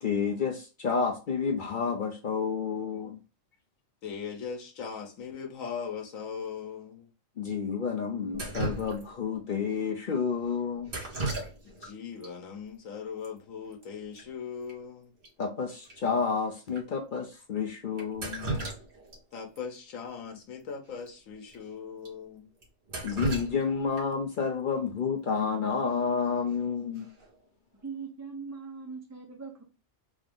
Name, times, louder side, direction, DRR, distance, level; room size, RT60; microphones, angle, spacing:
voice 1, 0.0-3.2 7.4-10.9 15.4-18.6 23.0-27.1, left 5 dB, 55° left, 0.5 m, -30 dB
voice 2, 4.0-7.1 11.6-15.1 19.3-22.5, left 6 dB, 90° left, 1.2 m, -39 dB
Drip, 8.3-9.3 10.9-11.9 12.2-12.3 13.2-13.3 13.6-13.8 14.2-14.3 14.7-14.8 15.2-15.3 15.9-16.0 16.7-16.8 18.0-19.2 19.6-19.7 21.0-21.1 21.5-21.6 22.1-22.2 22.6-24.2 26.2-26.5 27.0-27.3, right 2 dB, 45° right, 1.3 m, -35 dB
voice 3, 27.8-29.6, right 5 dB, 20° right, 0.4 m, -40 dB
3.6 x 2.5 x 3.4 m
omnidirectional pair, 1.4 m